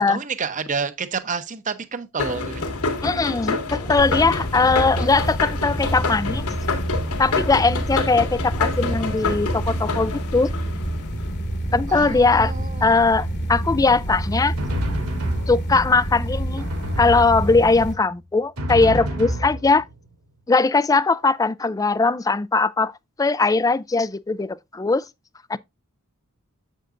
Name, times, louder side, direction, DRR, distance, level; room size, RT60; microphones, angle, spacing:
voice 1, 0.0-2.6 11.9-13.1, right 5 dB, 35° right, 0.8 m, -29 dB
sound 1, 2.2-11.3, left 3 dB, 75° left, 2.0 m, -27 dB
voice 2, 3.0-6.5 7.2-10.5 11.7-12.5 12.8-14.5 15.5-16.7 17.0-19.9 20.5-22.9 23.2-25.0 25.5-25.6, left 3 dB, 15° left, 0.3 m, -20 dB
sound 2, 4.0-17.9, right 1 dB, 50° left, 1.3 m, -28 dB
Drum, 14.1-16.0 16.6-17.9 18.6-20.1, equal, 75° right, 3.2 m, -29 dB
7.9 x 7.5 x 2.5 m
head